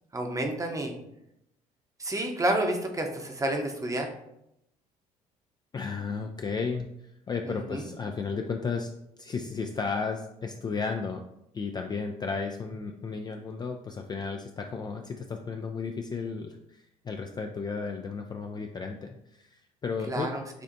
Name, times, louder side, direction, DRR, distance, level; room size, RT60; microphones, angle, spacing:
voice 1, 0.1-1.0 2.0-4.2 7.5-7.9 20.1-20.4, right 1 dB, 15° right, 3 dB, 0.8 m, -30 dB
voice 2, 5.7-6.9 7.3-8.9 9.2-11.2 11.5-20.3, left 5 dB, 20° left, 3 dB, 0.3 m, -33 dB
6.8 x 2.5 x 2.5 m, 0.81 s
figure-of-eight pair, 55°, 19 cm